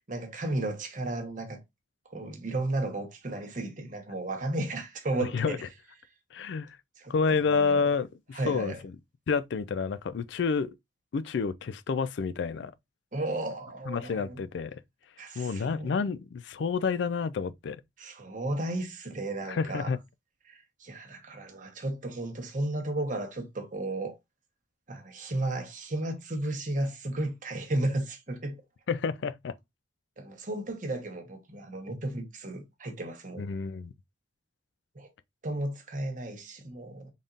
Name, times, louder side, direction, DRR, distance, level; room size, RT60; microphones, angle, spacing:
voice 1, 0.1-1.6 2.0-5.6 7.0-7.8 8.3-8.8 13.1-14.4 15.2-15.9 18.0-19.9 20.5-24.2 24.9-28.6 30.2-33.5 34.9-35.1 35.4-37.1, right 2 dB, 40° right, 0.9 m, -34 dB
voice 2, 5.2-5.6 6.3-6.8 7.1-8.9 9.3-10.7 11.1-12.7 13.9-14.8 15.4-17.8 19.5-20.0 28.9-29.5 33.4-33.9, left 5 dB, 65° left, 0.3 m, -29 dB
4.0 x 3.6 x 2.4 m
head